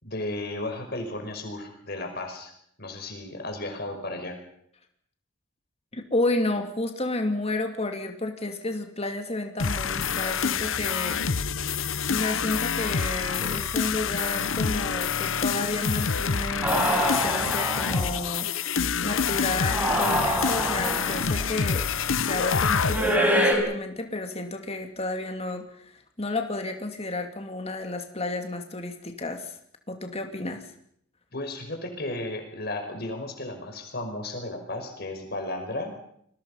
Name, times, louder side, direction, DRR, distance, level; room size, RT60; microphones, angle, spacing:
voice 1, 0.0-2.5 2.8-4.4 31.3-35.9, left 2 dB, 50° left, 4 dB, 5.4 m, -34 dB
voice 2, 5.9-11.2 12.1-18.5 19.0-29.6 29.9-30.7, left 2 dB, 30° left, 5 dB, 2.5 m, -31 dB
sound 1, 9.6-23.2, left 6 dB, 75° left, 1.0 m, -27 dB
sound 2, 16.6-18.2 19.6-21.3 22.8-23.5, equal, 10° right, 5.5 m, -25 dB
29.5 x 21.5 x 5.7 m, 0.69 s
head